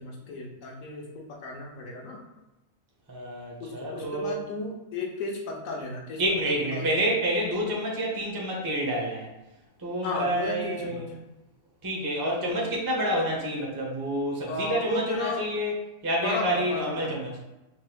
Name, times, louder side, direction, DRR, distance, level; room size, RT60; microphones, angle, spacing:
voice 1, 0.0-2.2 3.6-6.9 10.0-11.0 12.4-12.6 14.5-15.5 16.2-17.2, left 3 dB, 75° left, 0 dB, 1.2 m, -34 dB
voice 2, 3.1-4.4 6.2-9.3 9.8-11.1 11.8-15.7 16.0-17.3, right 1 dB, 25° right, -2 dB, 0.5 m, -28 dB
4.2 x 3.5 x 2.2 m, 0.99 s
omnidirectional pair, 1.5 m